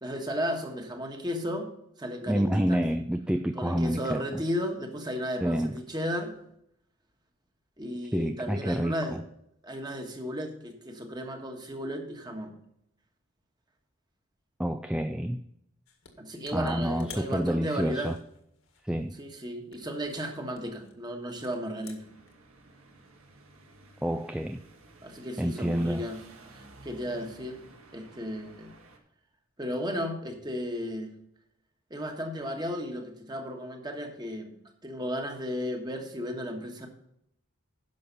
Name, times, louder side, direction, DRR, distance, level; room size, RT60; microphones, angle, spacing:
voice 1, 0.0-1.7 2.0-2.8 3.5-6.4 7.8-9.2 9.6-12.5 16.2-18.1 19.2-22.1 25.0-26.2 26.5-27.6 27.9-28.7 29.6-31.1 31.9-34.6 34.8-36.9, equal, 20° right, 4 dB, 1.4 m, -34 dB
voice 2, 2.3-4.4 5.4-5.8 8.1-9.2 14.6-15.4 16.5-18.2 18.8-19.1 24.0-24.6 25.4-26.1, equal, 5° right, 8 dB, 0.3 m, -28 dB
sound 1, 15.8-16.1 16.4-19.2 19.7-22.3, left 6 dB, 70° left, 1.9 m, -52 dB
sound 2, 22.0-29.0, right 2 dB, 75° right, 1.8 m, -53 dB
10.5 x 6.4 x 5.4 m, 0.75 s
head